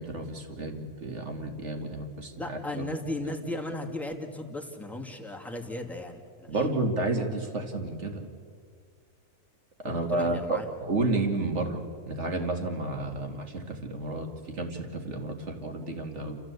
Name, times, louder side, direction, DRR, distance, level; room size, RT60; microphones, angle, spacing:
voice 1, 0.0-2.9 6.5-8.2 9.8-16.4, right 2 dB, 45° right, 4 dB, 2.5 m, -31 dB
voice 2, 2.4-6.5 9.8-10.7, left 1 dB, ahead, 0 dB, 2.1 m, -36 dB
30.0 x 14.0 x 8.3 m, 2.1 s
omnidirectional pair, 1.6 m